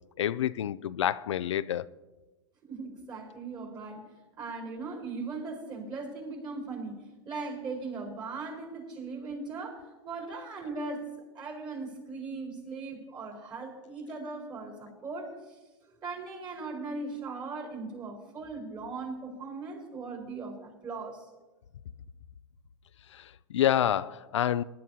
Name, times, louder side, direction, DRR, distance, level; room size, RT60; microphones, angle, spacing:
voice 1, 0.2-1.9 23.1-24.6, left 11 dB, 85° left, 0.4 m, -28 dB
voice 2, 2.6-4.1 4.4-11.1 11.3-15.6 16.0-21.3, right 3 dB, 30° right, 4.3 m, -39 dB
21.0 x 11.0 x 2.8 m
hypercardioid pair, 110°, 15 cm